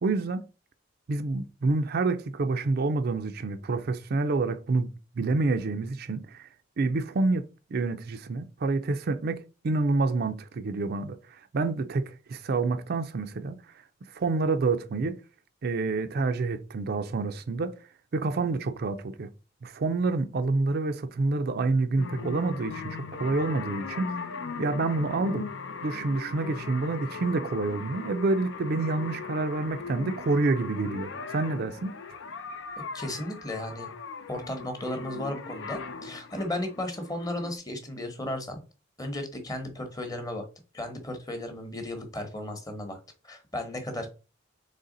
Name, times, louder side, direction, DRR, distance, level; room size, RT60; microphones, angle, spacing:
voice 1, 0.0-0.5 1.1-6.5 6.8-7.4 7.7-13.6 14.1-15.2 15.6-17.7 18.1-19.3 19.6-25.5 25.8-32.0, right 3 dB, 55° right, 0.4 m, -28 dB
sound 1, 22.0-37.6, left 5 dB, 70° left, 0.5 m, -39 dB
voice 2, 32.9-33.9 34.3-38.6 39.0-40.4 40.7-43.0 43.2-44.1, left 1 dB, 20° left, 0.9 m, -35 dB
4.1 x 3.3 x 3.8 m
head